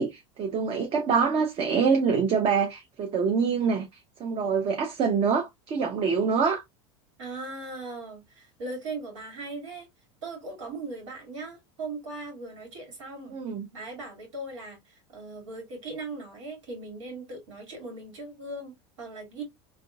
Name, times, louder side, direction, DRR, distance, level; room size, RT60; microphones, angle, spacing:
voice 1, 0.0-3.9 4.2-6.6 13.3-13.7, right 5 dB, 40° right, 0.7 m, -25 dB
voice 2, 7.2-9.9 10.2-13.4 13.7-19.4, right 2 dB, 90° right, 2.0 m, -39 dB
3.6 x 2.7 x 2.3 m
supercardioid pair, 110°, 16 cm